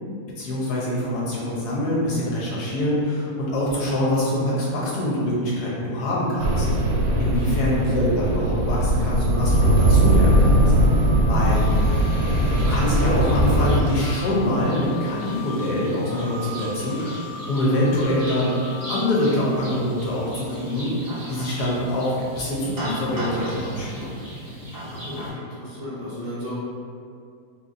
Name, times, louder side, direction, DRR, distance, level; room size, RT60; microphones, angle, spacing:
voice 1, 0.4-6.7 7.2-10.6 11.0-11.7 12.4-18.5 18.9-24.1, left 1 dB, 75° left, -6 dB, 1.3 m, -25 dB
sound 1, 6.4-13.8, right 1 dB, 70° right, 1.0 m, -19 dB
sound 2, 9.3-19.3, left 4 dB, 35° left, 0.9 m, -39 dB
sound 3, 11.4-25.3, equal, 30° right, 0.4 m, -38 dB
voice 2, 24.9-26.7, left 1 dB, 45° right, -9 dB, 0.8 m, -35 dB
4.3 x 2.9 x 2.5 m, 2.4 s
omnidirectional pair, 1.8 m